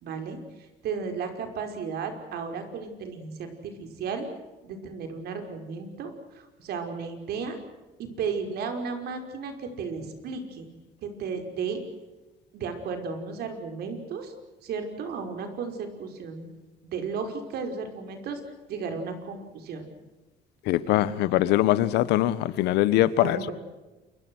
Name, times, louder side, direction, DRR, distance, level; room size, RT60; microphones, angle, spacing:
voice 1, 0.0-4.3 4.6-7.6 8.0-10.7 11.0-11.8 12.5-14.3 14.6-16.5 16.8-18.4 18.7-19.9 23.2-23.5, right 5 dB, 70° right, 5.3 m, -34 dB
voice 2, 20.7-23.4, left 14 dB, 90° left, 1.4 m, -22 dB
28.5 x 23.5 x 6.4 m
cardioid pair, 110°, 17 cm